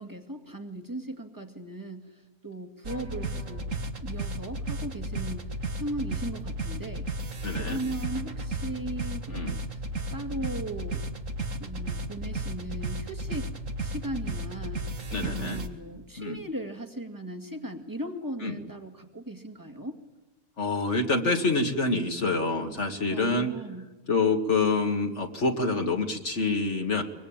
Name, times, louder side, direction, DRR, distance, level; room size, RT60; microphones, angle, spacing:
voice 1, 0.0-2.1 2.4-3.7 4.0-5.5 5.8-7.1 7.6-9.6 10.1-11.1 11.6-13.5 13.8-14.8 15.1-20.0 23.1-23.8, right 1 dB, 15° right, 3 dB, 2.1 m, -37 dB
sound 1, 2.8-15.7, right 1 dB, 70° right, 2.1 m, -34 dB
voice 2, 7.4-7.8 9.3-9.6 15.1-15.6 16.2-16.4 18.4-18.6 20.6-23.5 24.1-27.0, left 3 dB, 55° left, 4 dB, 2.3 m, -27 dB
24.0 x 23.5 x 8.8 m, 1.2 s
omnidirectional pair, 1.4 m